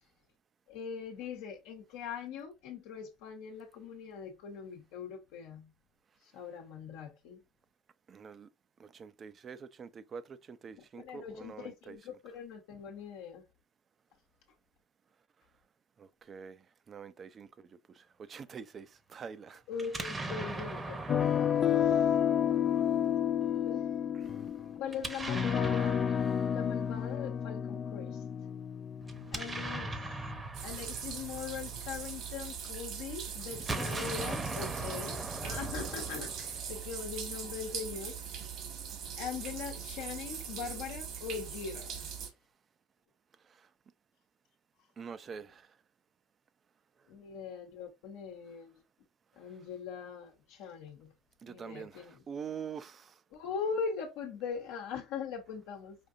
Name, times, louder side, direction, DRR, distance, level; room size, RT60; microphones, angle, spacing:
voice 1, 0.7-5.7 6.2-7.4 10.8-13.4 19.7-22.6 23.7-24.0 24.8-26.0 26.5-28.2 29.3-30.1 30.6-38.2 39.2-42.1 47.1-48.8 49.3-51.1 51.4-52.2 53.3-56.0, left 6 dB, 75° left, 0.9 m, -41 dB
voice 2, 8.1-8.5 8.8-12.0 16.0-19.6 24.2-24.5 43.4-43.7 45.0-45.8 51.4-53.2, right 6 dB, 40° right, 0.5 m, -46 dB
Explosion, 19.8-22.8 24.9-27.1 29.0-32.5 33.5-36.9, right 2 dB, 20° right, 0.8 m, -40 dB
sound 1, 21.1-30.3, left 9 dB, 40° left, 0.3 m, -30 dB
sound 2, 30.5-42.3, right 7 dB, 60° right, 1.5 m, -41 dB
5.1 x 2.6 x 2.6 m
supercardioid pair, 85°, 0 cm